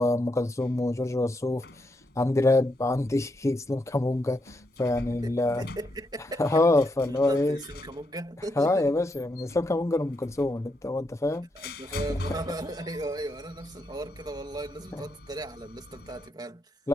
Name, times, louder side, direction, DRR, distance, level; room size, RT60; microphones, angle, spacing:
voice 1, 0.0-5.6 6.4-7.6 8.6-11.5 16.8-16.9, left 2 dB, 15° left, 0.4 m, -26 dB
sound 1, 0.6-16.3, left 1 dB, 65° left, 5.3 m, -44 dB
voice 2, 5.1-6.6 7.1-8.9 11.5-16.7, right 2 dB, 25° right, 2.3 m, -37 dB
head